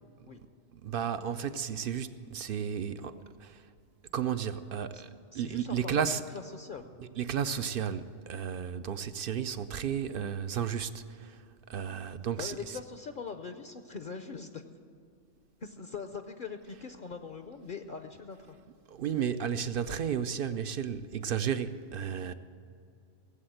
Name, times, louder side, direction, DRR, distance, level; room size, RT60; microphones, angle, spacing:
voice 1, 0.7-3.6 4.1-5.1 5.3-6.2 7.0-11.4 11.7-12.6 18.9-22.3, right 8 dB, 60° right, 0.6 m, -33 dB
voice 2, 5.3-6.9 12.4-14.6 15.6-18.6, left 5 dB, 50° left, 0.7 m, -42 dB
18.0 x 7.8 x 7.9 m
omnidirectional pair, 1.3 m